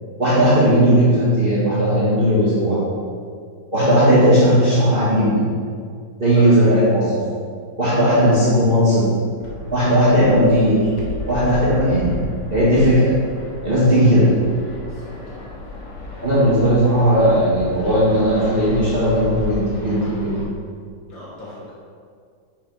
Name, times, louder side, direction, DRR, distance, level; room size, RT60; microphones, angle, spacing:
voice 1, 0.2-2.8 3.7-5.5 6.2-7.2 7.8-9.1 9.7-10.8 11.3-12.2 12.5-13.1 13.6-14.3 16.2-20.5, equal, 30° right, -11 dB, 1.7 m, -16 dB
Fixed-wing aircraft airplane, 9.4-20.4, left 3 dB, 65° left, 1.9 m, -33 dB
voice 2, 13.7-14.1 15.0-15.4 16.4-16.5 21.1-21.7, left 1 dB, 85° left, -6 dB, 2.2 m, -38 dB
6.7 x 5.1 x 4.7 m, 2.1 s
omnidirectional pair, 2.0 m